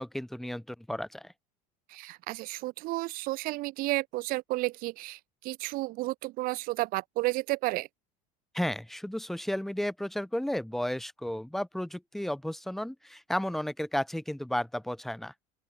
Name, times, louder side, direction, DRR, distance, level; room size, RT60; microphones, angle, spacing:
voice 1, 0.0-1.3 8.5-15.3, left 1 dB, ahead, 2.5 m, -33 dB
voice 2, 1.9-7.9, right 20 dB, 50° right, 2.0 m, -32 dB
open air
cardioid pair, 155°, 18 cm